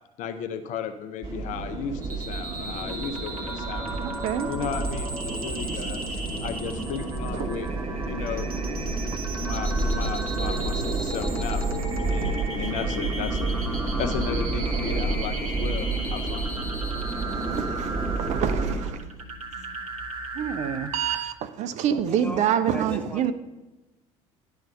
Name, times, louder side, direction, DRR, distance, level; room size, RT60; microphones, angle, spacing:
voice 1, 0.2-4.1 4.4-6.1 6.4-7.7 8.0-8.5 9.4-11.7 12.1-13.6 14.0-16.5, left 7 dB, 45° left, 0.6 m, -34 dB
sound 1, 1.2-18.8, right 3 dB, 20° right, 2.1 m, -30 dB
sound 2, 2.0-21.2, right 2 dB, 85° right, 0.9 m, -36 dB
sound 3, 2.6-14.4, equal, 65° left, 1.4 m, -46 dB
voice 2, 4.0-4.5 9.1-9.2 10.5-10.6 17.5-19.0 20.4-23.3, right 9 dB, 40° right, 0.4 m, -27 dB
voice 3, 21.9-23.3, left 1 dB, 5° left, 0.9 m, -38 dB
10.5 x 3.5 x 5.4 m
figure-of-eight pair, 65°, 18 cm